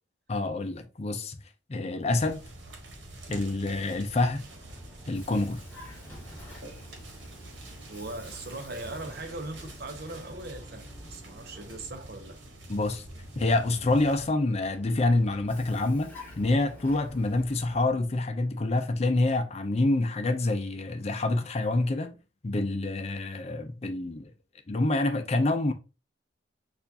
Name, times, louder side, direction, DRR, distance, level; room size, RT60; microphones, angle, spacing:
voice 1, 0.3-1.4 1.7-2.4 3.3-4.4 5.1-5.6 12.7-13.0 13.4-22.2 22.4-24.3 24.7-25.7, left 2 dB, 35° left, 0.5 m, -27 dB
sound 1, 2.2-14.3, right 1 dB, 70° right, 1.2 m, -46 dB
Vehicle, 4.0-12.5 14.2-18.1, left 1 dB, 10° left, 1.5 m, -50 dB
voice 2, 7.9-12.3, right 2 dB, 55° right, 0.7 m, -40 dB
6.6 x 2.5 x 2.7 m
head